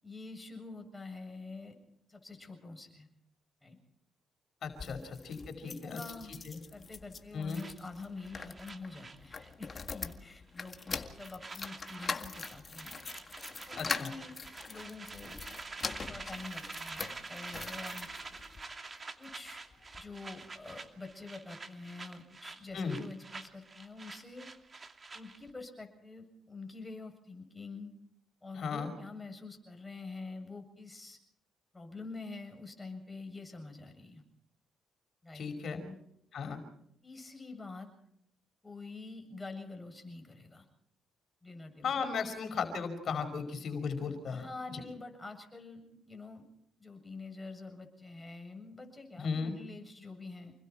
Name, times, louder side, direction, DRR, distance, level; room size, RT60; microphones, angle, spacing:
voice 1, 0.0-1.7 2.1-3.1 3.6-3.8 4.8-5.1 5.6-6.3 6.7-13.0 13.5-14.4 14.6-15.4 16.0-18.1 19.2-19.6 20.0-24.5 25.1-27.9 28.4-31.2 31.7-34.2 35.2-36.0 37.0-37.9 38.6-40.7 41.4-42.0 44.3-46.5 46.8-50.5, left 3 dB, 15° left, 4 dB, 7.5 m, -46 dB
voice 2, 4.6-6.0 6.5-6.6 7.3-7.6 13.8-14.1 22.7-23.0 28.6-28.9 35.3-35.8 36.3-36.6 41.8-44.5 44.7-44.8 49.2-49.5, left 5 dB, 60° left, 5 dB, 5.3 m, -36 dB
sound 1, 4.6-18.6 19.2-20.1 20.4-20.5 20.7-20.8, left 4 dB, 35° left, 1.9 m, -43 dB
sound 2, 7.5-9.8 10.1-10.3 10.6-25.5, right 3 dB, 30° right, 2.6 m, -47 dB
29.0 x 21.0 x 4.5 m, 0.73 s
cardioid pair, 90°, 0 cm